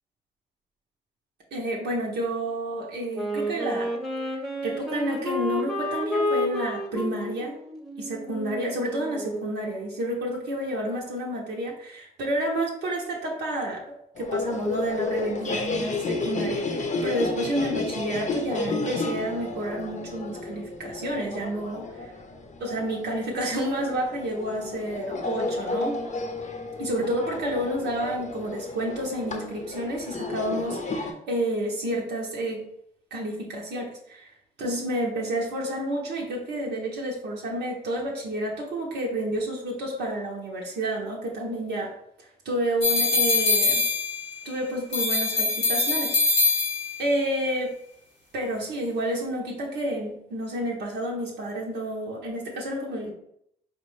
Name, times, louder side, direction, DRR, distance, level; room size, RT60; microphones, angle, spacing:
voice 1, 1.5-3.9 4.6-7.5 8.0-13.8 14.2-22.1 22.6-26.0 26.8-32.6 33.1-34.3 34.6-41.9 42.4-43.8 44.4-46.2 47.0-47.7 48.3-53.1, right 1 dB, 75° right, -2 dB, 0.7 m, -30 dB
Wind instrument woodwind instrument, 3.1-9.7, left 1 dB, ahead, 0.9 m, -31 dB
sound 1, 14.1-31.1, left 3 dB, 40° left, 0.6 m, -32 dB
sound 2, 42.8-44.5 44.9-47.1, left 3 dB, 90° left, 1.1 m, -23 dB
4.4 x 2.1 x 3.0 m, 0.74 s
supercardioid pair, 50°, 18 cm